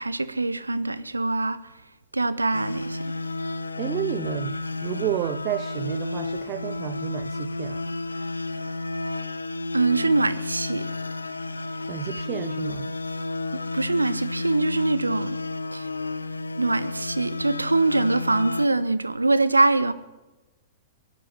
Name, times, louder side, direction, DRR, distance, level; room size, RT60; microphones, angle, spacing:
voice 1, 0.0-1.6 2.1-3.1 9.7-10.9 13.5-15.4 15.7-15.9 16.6-19.9, right 2 dB, 85° right, 0.8 m, -23 dB
sound 1, 2.5-18.7, left 3 dB, 80° left, 0.5 m, -31 dB
voice 2, 3.8-7.9 11.9-12.9, right 16 dB, 40° right, 0.5 m, -31 dB
17.0 x 8.3 x 7.4 m
figure-of-eight pair, 105°, 0 cm